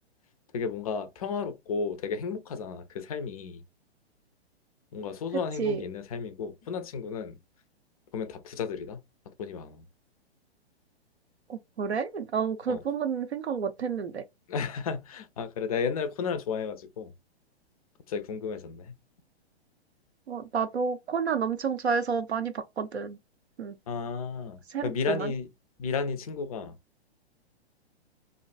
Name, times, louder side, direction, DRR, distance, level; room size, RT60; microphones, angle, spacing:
voice 1, 0.5-3.6 4.9-7.4 8.1-9.0 9.4-9.8 12.7-12.8 14.5-17.1 18.1-18.9 23.9-25.5 25.8-26.8, left 5 dB, 35° left, 0.4 m, -33 dB
voice 2, 11.5-14.2 20.3-23.2 23.6-23.8 24.7-25.3, right 6 dB, 75° right, 0.6 m, -30 dB
2.5 x 2.2 x 2.3 m
figure-of-eight pair, 115°, 33 cm